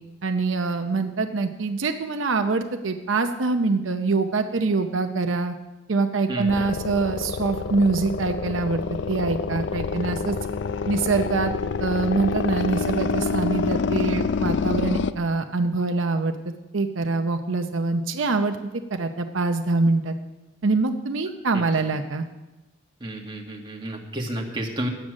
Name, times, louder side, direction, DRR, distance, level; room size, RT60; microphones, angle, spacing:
voice 1, 0.2-5.6 5.9-8.8 9.1-10.4 10.9-11.5 11.8-20.1 20.6-22.3, right 3 dB, 80° right, 6 dB, 0.7 m, -24 dB
voice 2, 6.3-6.7 21.5-21.6 23.0-24.9, right 1 dB, 25° right, -1 dB, 1.7 m, -31 dB
sound 1, 6.5-15.1, left 5 dB, 60° left, 0.4 m, -27 dB
11.5 x 8.7 x 6.3 m, 1.1 s
head